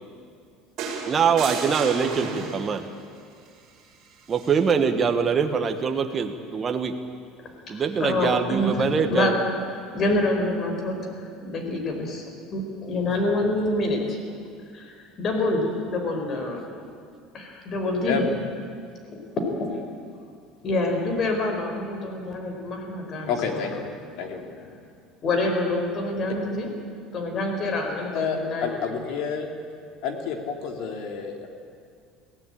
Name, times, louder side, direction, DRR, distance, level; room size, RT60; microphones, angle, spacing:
sound 1, 0.8-2.9 4.3-4.5, right 5 dB, 50° right, 4.3 m, -32 dB
voice 1, 1.0-2.8 4.3-6.9 7.7-9.3, right 6 dB, 25° right, 5 dB, 1.3 m, -23 dB
voice 2, 7.7-9.3 9.9-11.0 11.4-14.2 14.7-16.6 17.3-18.2 19.1-19.2 19.6-19.7 20.6-23.6 25.2-26.7 27.1-29.1, left 2 dB, 35° left, 3 dB, 4.6 m, -27 dB
voice 3, 23.3-23.7 24.2-24.4 28.1-29.5 30.0-31.5, left 6 dB, 65° left, 4 dB, 3.1 m, -29 dB
22.5 x 16.5 x 8.9 m, 2.3 s
cardioid pair, 145°, 0 cm